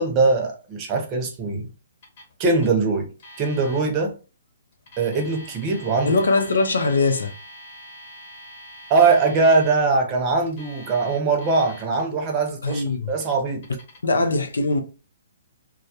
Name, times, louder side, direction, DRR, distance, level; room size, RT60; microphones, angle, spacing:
voice 1, 0.0-1.7 2.4-3.1 3.4-4.2 5.0-6.1 8.9-13.7, right 4 dB, 30° right, 0.7 m, -21 dB
Alarm, 2.0-2.3 2.6-2.7 3.2-3.8 4.7-9.8 10.5-12.0 12.5-12.8 13.2-14.0, equal, 55° left, 1.0 m, -44 dB
voice 2, 6.0-7.3 12.6-13.1 14.0-14.8, left 3 dB, 80° left, 0.5 m, -21 dB
2.2 x 2.0 x 2.8 m
hypercardioid pair, 140°, 0 cm